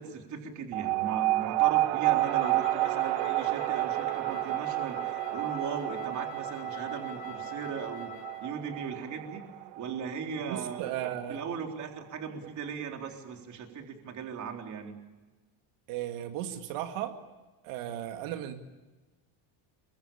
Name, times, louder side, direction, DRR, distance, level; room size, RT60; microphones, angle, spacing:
voice 1, 0.0-9.4 9.8-15.0, right 6 dB, 35° right, 3 dB, 3.8 m, -38 dB
sound 1, 0.7-11.6, right 18 dB, 60° right, 0.9 m, -30 dB
Wind instrument woodwind instrument, 2.1-8.6, left 7 dB, 65° left, 4.8 m, -45 dB
voice 2, 10.5-11.4 15.9-17.2 17.6-18.5, right 11 dB, 90° right, 6 dB, 2.5 m, -35 dB
28.5 x 23.5 x 8.8 m, 1.2 s
cardioid pair, 180°, 50 cm